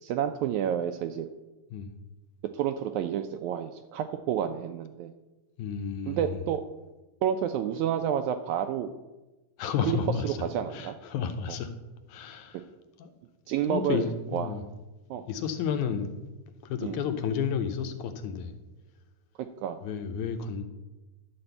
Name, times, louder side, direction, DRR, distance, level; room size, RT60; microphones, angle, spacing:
voice 1, 0.0-1.3 2.5-5.1 6.1-6.6 7.2-8.9 9.8-10.0 10.2-11.0 11.5-11.6 13.5-14.5 15.1-15.2 16.8-17.0 19.4-19.8, right 9 dB, 80° right, 8 dB, 1.7 m, -30 dB
voice 2, 5.6-6.4 9.6-10.4 10.7-11.7 12.1-12.6 13.0-13.1 13.7-14.6 15.3-16.1 16.6-18.5 19.8-20.6, left 7 dB, 75° left, 7 dB, 1.9 m, -31 dB
11.5 x 4.3 x 7.8 m, 1.1 s
omnidirectional pair, 3.8 m